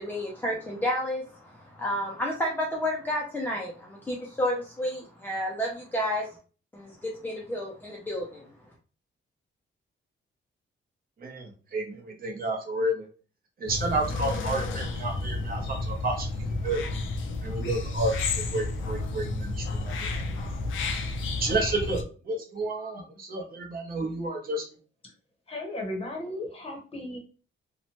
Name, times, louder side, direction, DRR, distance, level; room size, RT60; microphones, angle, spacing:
voice 1, 0.0-6.3 6.7-8.5, left 1 dB, 10° left, -2 dB, 0.4 m, -31 dB
voice 2, 11.2-13.1 13.6-16.3 16.6-16.8 17.4-19.9 20.2-20.6 21.4-24.6, right 2 dB, 45° right, 0 dB, 0.7 m, -31 dB
sound 1, 13.7-22.0, left 3 dB, 75° left, 0.4 m, -31 dB
voice 3, 25.5-27.2, left 1 dB, 30° left, 1 dB, 0.8 m, -35 dB
2.8 x 2.1 x 2.8 m, 0.38 s
wide cardioid pair, 165°, 20 cm